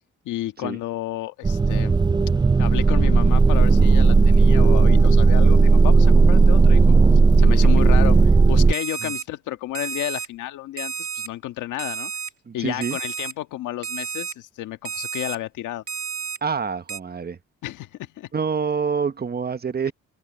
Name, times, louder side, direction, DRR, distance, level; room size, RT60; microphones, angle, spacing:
voice 1, 0.2-2.0 2.6-7.0 7.4-12.1 12.5-15.8 17.6-18.3, left 14 dB, 90° left, 1.6 m, -31 dB
sound 1, 1.4-8.7, right 4 dB, 15° right, 0.4 m, -15 dB
Alarm, 8.7-9.2 9.7-10.3 10.8-11.3 11.8-12.3 12.8-13.3 13.8-14.3 14.8-15.4 15.9-16.4 16.9-17.0, right 6 dB, 50° right, 2.8 m, -31 dB
voice 2, 12.5-13.0 16.4-17.4 18.3-19.9, right 6 dB, 30° right, 1.2 m, -26 dB
open air
cardioid pair, 90°, 30 cm